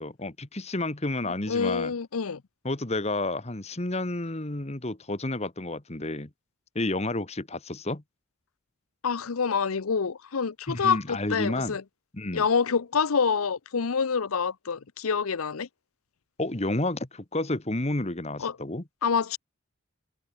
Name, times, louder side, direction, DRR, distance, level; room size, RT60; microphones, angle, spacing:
voice 1, 0.0-1.9 2.6-6.3 6.7-8.0 10.7-11.8 12.1-12.4 16.4-18.8, left 2 dB, 30° left, 1.5 m, -30 dB
voice 2, 1.2-2.4 9.0-11.8 12.3-15.7 18.4-18.6 19.0-19.4, left 5 dB, 90° left, 0.7 m, -27 dB
head